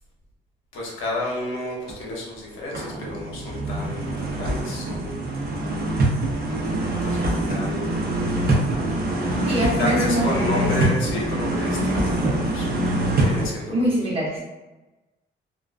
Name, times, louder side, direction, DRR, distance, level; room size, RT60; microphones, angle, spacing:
voice 1, 0.7-5.2 7.0-8.4 9.8-12.7 13.2-13.9, left 1 dB, 85° left, -3 dB, 0.8 m, -31 dB
sound 1, 1.9-2.0 2.5-13.5, right 1 dB, 50° right, 0.6 m, -24 dB
voice 2, 9.4-10.9 13.7-14.4, right 1 dB, 30° right, -5 dB, 1.0 m, -24 dB
2.3 x 2.2 x 2.4 m, 1.1 s
cardioid pair, 90°, 20 cm